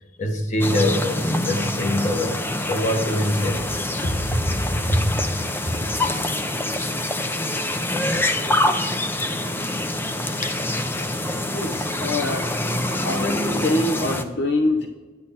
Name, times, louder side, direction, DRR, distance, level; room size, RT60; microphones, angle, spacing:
voice 1, 0.2-5.1 5.6-5.8 10.4-10.6, left 1 dB, 40° left, 4 dB, 1.4 m, -25 dB
sound 1, 0.6-14.2, left 1 dB, 10° left, 0.5 m, -25 dB
voice 2, 11.4-12.7 13.0-14.9, left 2 dB, 60° left, 3 dB, 0.8 m, -25 dB
10.0 x 9.6 x 4.3 m, 1.3 s
head